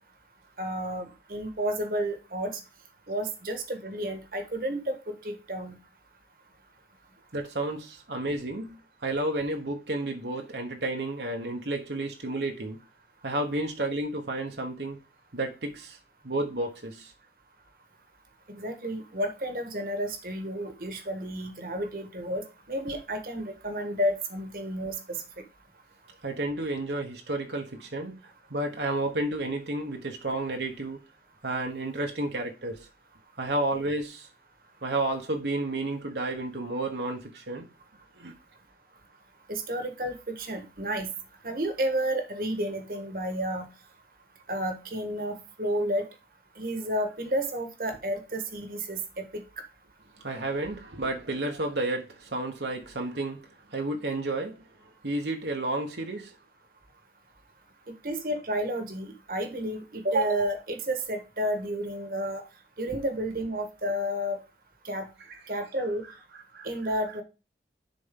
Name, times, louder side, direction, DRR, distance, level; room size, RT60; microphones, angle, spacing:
voice 1, 0.6-2.5 3.1-5.8 18.6-25.2 39.5-41.1 41.4-43.7 44.5-46.1 46.6-49.4 58.0-62.4 62.8-64.4 64.8-65.1 65.5-66.0 66.6-67.2, right 1 dB, 55° right, 1.4 m, -31 dB
voice 2, 7.3-12.8 13.2-15.0 15.3-16.0 16.2-17.1 26.2-31.0 31.4-32.9 33.4-34.3 34.8-37.7 38.2-38.3 50.2-54.6 55.0-56.3 62.9-63.0 65.3-65.4 66.3-66.7, right 2 dB, 75° right, 1.2 m, -31 dB
10.5 x 4.2 x 3.7 m
head